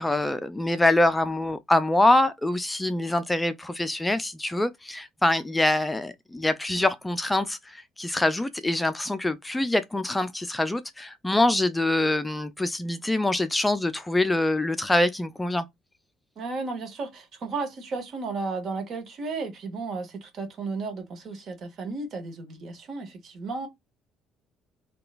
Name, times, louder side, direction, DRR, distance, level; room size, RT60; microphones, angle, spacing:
voice 1, 0.0-15.7, left 1 dB, 10° left, 0.4 m, -24 dB
voice 2, 16.4-23.7, right 3 dB, 45° right, 0.9 m, -34 dB
2.8 x 2.3 x 2.4 m
figure-of-eight pair, 50°, 0 cm